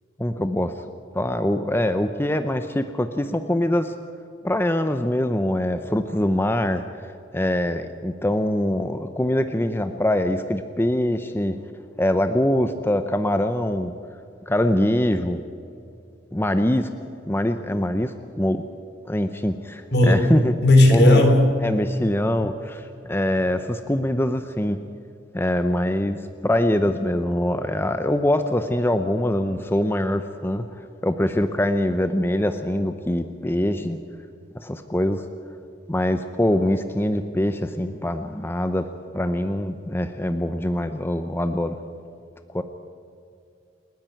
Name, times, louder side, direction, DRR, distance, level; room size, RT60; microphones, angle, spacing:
voice 1, 0.2-0.8 1.1-3.9 4.4-11.6 12.0-13.9 14.5-15.4 16.3-18.6 19.0-20.5 20.9-21.2 21.6-24.8 25.3-34.0 34.5-35.3 35.9-38.9 39.1-41.8 42.5-42.6, left 1 dB, 15° left, 9 dB, 0.7 m, -23 dB
voice 2, 19.9-21.6, left 1 dB, 60° left, 5 dB, 3.4 m, -15 dB
28.5 x 10.5 x 9.1 m, 2.5 s
head